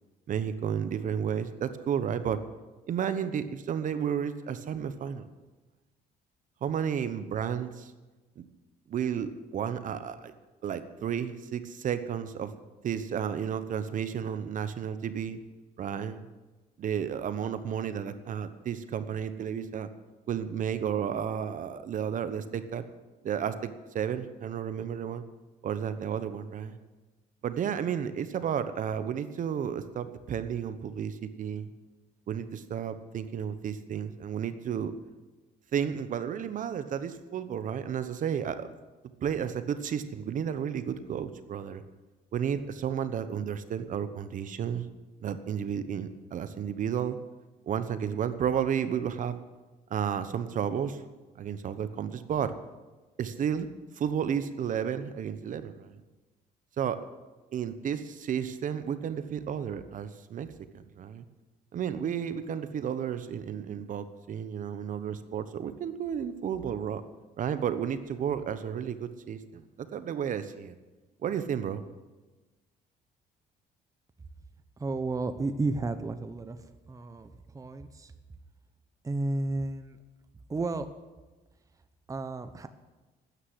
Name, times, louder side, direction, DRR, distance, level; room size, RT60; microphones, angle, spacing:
voice 1, 0.3-2.4 2.9-5.3 6.6-7.9 8.4-8.5 8.9-10.3 10.6-12.6 12.8-15.4 15.8-16.2 16.8-19.9 20.3-22.8 23.2-25.2 25.6-26.8 27.4-31.7 32.3-34.9 35.7-38.7 39.2-41.8 42.3-44.9 45.2-47.2 47.7-49.4 49.9-51.0 51.4-52.5 53.2-53.7 54.0-56.0 56.8-57.0 57.5-60.5 60.7-61.2 61.7-67.0 67.4-70.7 71.2-71.8, right 8 dB, 50° right, 11 dB, 1.0 m, -32 dB
voice 2, 74.8-78.1 79.0-80.0 80.5-80.9 82.1-82.7, right 3 dB, 20° right, 10 dB, 0.9 m, -32 dB
12.5 x 10.0 x 9.7 m, 1.2 s
cardioid pair, 110°, 17 cm